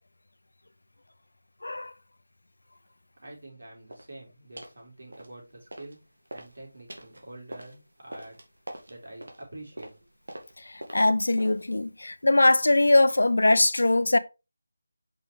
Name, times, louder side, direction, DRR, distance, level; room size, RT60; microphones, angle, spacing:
voice 1, 1.6-1.9 10.9-14.2, left 2 dB, 80° left, 0.7 m, -21 dB
voice 2, 3.2-6.0 6.3-8.4 8.9-9.9, right 2 dB, 70° right, 4.1 m, -46 dB
sound 1, 3.9-4.1 4.6-4.8 5.1-6.0 6.2-11.8, right 1 dB, 85° right, 2.1 m, -45 dB
5.9 x 5.4 x 3.4 m
figure-of-eight pair, 170°, 0 cm